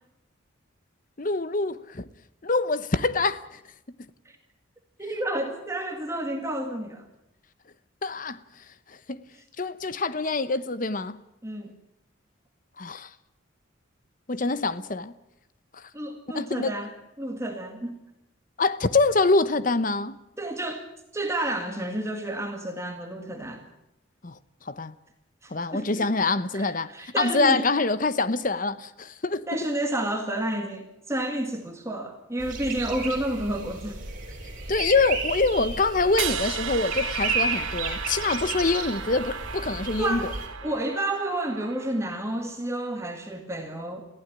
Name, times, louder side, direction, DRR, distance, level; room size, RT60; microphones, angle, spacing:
voice 1, 1.2-2.1 2.4-3.6 8.0-8.4 9.1-9.2 9.6-11.2 12.8-13.1 14.3-15.1 15.7-15.8 16.3-16.7 18.6-20.2 24.2-24.4 24.7-24.9 25.5-26.9 27.2-29.4 34.7-40.3, left 3 dB, 40° left, 0.9 m, -25 dB
voice 2, 5.0-7.1 11.4-11.8 15.9-16.9 17.2-18.0 20.4-20.9 21.1-23.7 25.4-26.1 26.5-27.7 29.5-34.1 40.0-40.3 40.6-44.0, right 1 dB, 15° right, 2.0 m, -30 dB
sound 1, 32.4-40.5, right 4 dB, 40° right, 5.2 m, -33 dB
sound 2, 36.2-42.3, right 7 dB, 80° right, 1.9 m, -35 dB
21.5 x 15.5 x 9.9 m
head